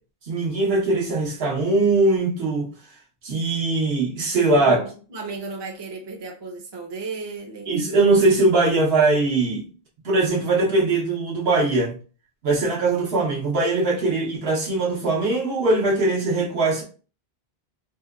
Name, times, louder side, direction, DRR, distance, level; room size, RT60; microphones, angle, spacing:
voice 1, 0.3-2.7 3.2-4.8 7.7-9.7 10.0-12.0 12.4-16.8, right 2 dB, 75° right, 0.9 m, -21 dB
voice 2, 4.5-7.8, right 4 dB, 35° right, 0.4 m, -34 dB
2.8 x 2.1 x 2.2 m
omnidirectional pair, 1.1 m